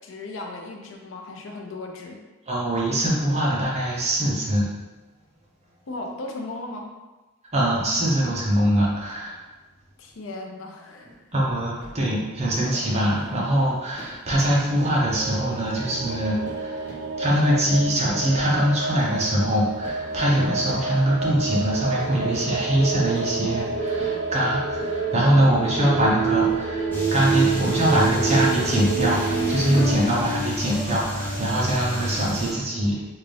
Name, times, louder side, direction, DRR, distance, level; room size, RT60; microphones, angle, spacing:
voice 1, 0.0-2.2 5.9-6.9 10.0-11.1, left 2 dB, 65° left, 2 dB, 0.5 m, -36 dB
voice 2, 2.5-4.7 7.5-9.4 11.3-16.9 17.2-33.0, right 1 dB, 30° right, -4 dB, 0.8 m, -23 dB
sound 1, 11.0-11.2 11.6-12.0 12.4-29.6 30.0-30.4, equal, 10° right, 1.2 m, -43 dB
sound 2, 15.0-29.9, right 4 dB, 65° right, 0.5 m, -28 dB
sound 3, 26.9-32.5, left 1 dB, 10° left, 0.7 m, -30 dB
3.6 x 2.5 x 3.3 m, 1.2 s
head